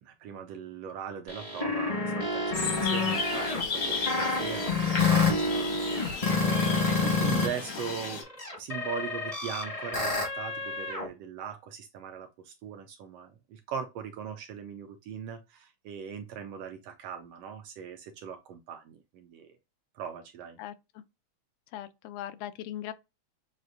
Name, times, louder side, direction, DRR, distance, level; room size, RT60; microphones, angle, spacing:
voice 1, 0.0-8.3 8.6-19.5 19.9-20.6, right 7 dB, 75° right, 1.4 m, -40 dB
sound 1, 1.3-7.5 7.8-11.1, left 3 dB, 30° left, 0.6 m, -28 dB
sound 2, 2.5-8.2, left 4 dB, 55° left, 1.0 m, -35 dB
voice 2, 21.7-22.9, left 12 dB, 90° left, 2.0 m, -39 dB
7.6 x 2.5 x 2.5 m
omnidirectional pair, 3.3 m